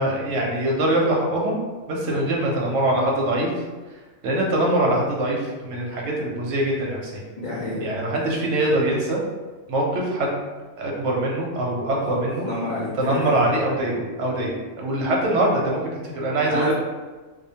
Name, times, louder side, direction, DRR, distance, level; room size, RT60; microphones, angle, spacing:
voice 1, 0.0-1.6 1.9-3.5 4.2-7.2 7.8-9.2 9.7-10.3 10.8-12.5 13.0-16.7, right 1 dB, 65° right, -2 dB, 0.8 m, -23 dB
voice 2, 7.4-7.9 8.2-8.4 12.4-13.4 16.5-16.7, left 2 dB, 70° left, -8 dB, 0.4 m, -28 dB
2.5 x 2.1 x 2.7 m, 1.3 s
omnidirectional pair, 1.5 m